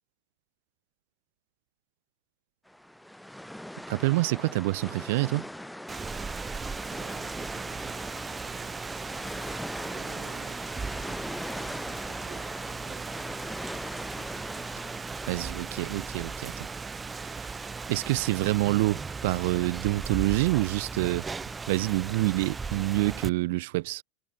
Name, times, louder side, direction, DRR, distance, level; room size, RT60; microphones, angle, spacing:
sound 1, 2.7-15.6, left 1 dB, ahead, 2.7 m, -40 dB
voice 1, 3.9-5.5 15.3-16.7 17.9-21.3 21.7-24.0, right 21 dB, 65° right, 0.4 m, -27 dB
Rain, 5.9-23.3, right 4 dB, 15° right, 0.6 m, -37 dB
voice 2, 6.9-9.5 9.9-13.5, right 13 dB, 35° right, 4.6 m, -52 dB
supercardioid pair, 130°, 0 cm